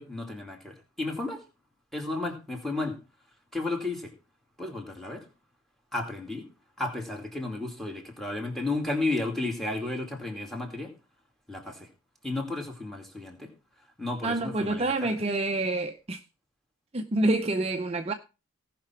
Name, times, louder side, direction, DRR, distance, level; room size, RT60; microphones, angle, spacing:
voice 1, 0.0-1.4 1.9-3.0 3.5-4.1 4.6-5.2 5.9-6.5 6.8-10.9 11.5-11.9 12.2-13.5 14.0-15.2, left 2 dB, ahead, 2.5 m, -33 dB
voice 2, 14.2-16.2 16.9-18.1, right 2 dB, 30° right, 0.6 m, -27 dB
17.5 x 5.9 x 4.4 m
head